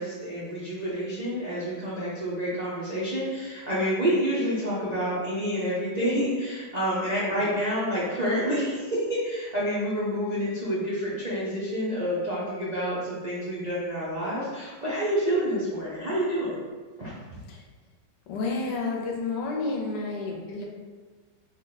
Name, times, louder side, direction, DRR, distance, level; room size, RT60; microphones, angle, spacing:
voice 1, 0.0-16.6 17.0-17.1, equal, 65° right, -9 dB, 0.4 m, -28 dB
voice 2, 18.3-20.6, left 3 dB, 75° left, -1 dB, 1.2 m, -30 dB
3.8 x 2.2 x 3.9 m, 1.4 s
omnidirectional pair, 1.9 m